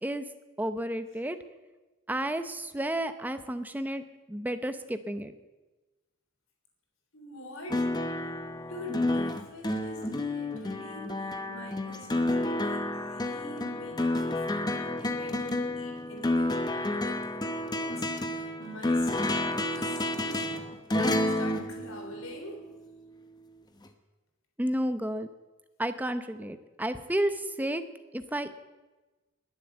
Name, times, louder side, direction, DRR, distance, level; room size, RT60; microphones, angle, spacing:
voice 1, 0.6-1.4 2.1-4.0 4.3-5.3 24.6-25.3 25.8-27.8 28.1-28.5, right 1 dB, 10° right, 10 dB, 0.7 m, -31 dB
voice 2, 7.1-7.9 8.7-20.5 20.9-22.7, left 1 dB, 65° left, 2 dB, 3.6 m, -45 dB
sound 1, 7.7-22.6 23.9-24.0, left 1 dB, 20° left, 0.9 m, -30 dB
20.5 x 7.8 x 7.8 m, 1.2 s
head